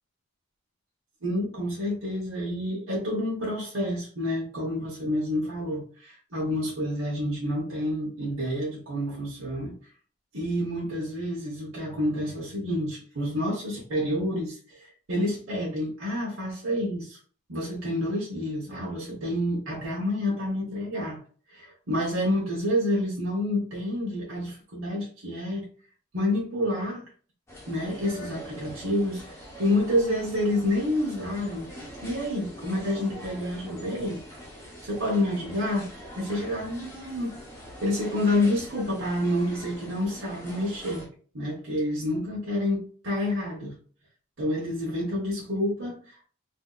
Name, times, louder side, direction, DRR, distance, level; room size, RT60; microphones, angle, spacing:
voice 1, 1.2-9.7 10.3-17.2 17.5-21.2 21.5-25.6 26.1-27.1 27.7-31.7 32.0-34.2 34.9-35.9 36.2-41.1 41.3-43.8 44.4-46.3, left 1 dB, 85° right, 0.9 m, -28 dB
sound 1, 27.5-41.1, equal, 10° left, 0.7 m, -43 dB
3.4 x 2.6 x 2.3 m
head